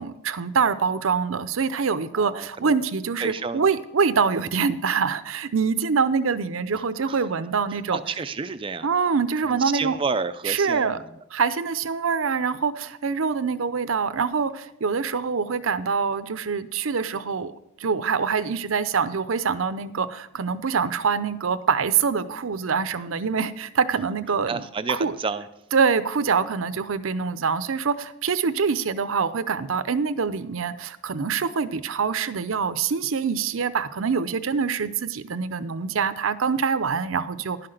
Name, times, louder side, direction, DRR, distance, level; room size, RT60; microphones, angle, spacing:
voice 1, 0.0-8.0 8.8-10.0 10.4-11.0 11.3-17.5 17.8-24.6 24.9-25.1 25.7-37.7, right 5 dB, 85° right, 13 dB, 0.6 m, -25 dB
voice 2, 2.2-2.8 3.2-3.7 7.0-7.3 7.7-8.9 9.6-11.2 24.5-25.5, right 4 dB, 25° right, 12 dB, 0.4 m, -30 dB
11.5 x 5.9 x 6.5 m, 0.83 s
head